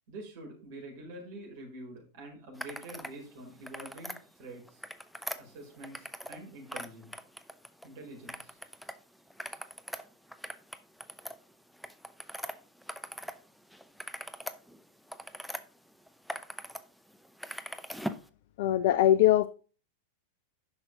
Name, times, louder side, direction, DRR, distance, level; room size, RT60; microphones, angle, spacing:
voice 1, 0.1-4.8 5.4-7.1 7.8-8.6, right 1 dB, 50° right, 0 dB, 4.6 m, -46 dB
sound 1, 2.6-3.2 3.5-4.2 4.7-6.4 6.7-7.9 8.3-8.9 9.3-13.4 13.7-15.6 16.1-16.8 17.1-18.3, equal, ahead, 0.7 m, -41 dB
voice 2, 18.6-19.5, left 12 dB, 50° left, 14 dB, 0.5 m, -22 dB
10.5 x 6.2 x 3.6 m, 0.36 s
figure-of-eight pair, 90°, 0 cm